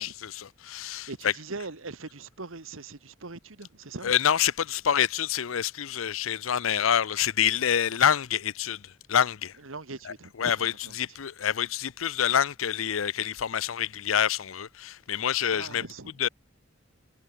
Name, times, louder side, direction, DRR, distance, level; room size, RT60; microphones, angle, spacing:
voice 1, 0.0-1.1 4.0-8.8 9.1-9.5 10.4-10.7 11.0-15.8 16.2-16.3, left 9 dB, 90° left, 0.6 m, -26 dB
voice 2, 0.7-4.1 6.7-6.9 9.6-11.2 15.5-16.3, right 3 dB, 85° right, 1.7 m, -42 dB
head